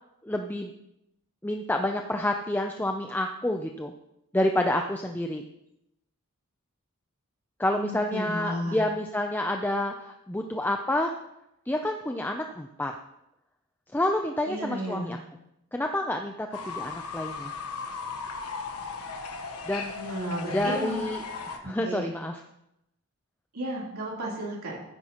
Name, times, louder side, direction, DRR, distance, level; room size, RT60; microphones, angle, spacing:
voice 1, 0.2-0.7 1.4-3.9 4.3-5.4 7.6-11.1 11.7-12.9 13.9-15.2 15.7-17.6 19.7-20.0 20.5-21.2 21.5-22.4, left 1 dB, 10° left, 4 dB, 0.4 m, -28 dB
voice 2, 7.7-8.8 14.5-15.1 19.9-21.0 21.6-22.1 23.5-24.8, right 1 dB, 75° right, -4 dB, 3.3 m, -33 dB
Fowl / Bird, 16.5-21.6, left 4 dB, 90° left, 1.2 m, -37 dB
15.0 x 9.8 x 2.9 m, 0.84 s
head